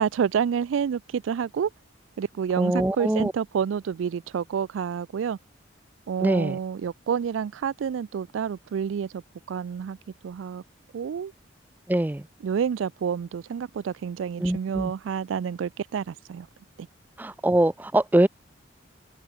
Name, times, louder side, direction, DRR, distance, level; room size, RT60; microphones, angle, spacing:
voice 1, 0.0-1.7 2.2-5.4 6.1-9.2 9.5-10.0 10.2-10.6 10.9-11.3 12.4-16.5 16.8-16.9, right 7 dB, 85° right, 0.3 m, -28 dB
voice 2, 2.6-3.3 6.2-6.6 11.9-12.3 14.4-14.9 17.2-18.3, right 1 dB, 10° right, 0.3 m, -23 dB
open air
head